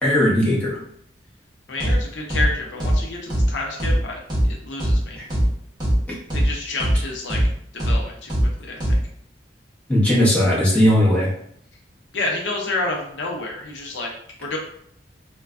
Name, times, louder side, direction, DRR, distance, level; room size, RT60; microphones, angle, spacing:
voice 1, 0.0-0.7 5.2-5.3 9.9-11.3, equal, 10° left, -7 dB, 0.8 m, -17 dB
voice 2, 1.7-4.2 4.5-5.2 6.3-7.4 7.7-8.3 8.6-9.0 12.1-14.1 14.4-14.6, left 2 dB, 70° left, 0 dB, 0.5 m, -29 dB
sound 1, 1.8-2.0 2.3-2.5 2.8-3.0 3.3-3.5 3.8-4.0 4.3-4.5 4.8-5.0 5.3-5.5 5.8-6.0 6.3-6.5 6.8-7.0 7.3-7.5 7.8-8.0 8.3-8.5 8.8-9.0, equal, 25° right, 0.8 m, -19 dB
3.2 x 2.2 x 2.4 m, 0.67 s
head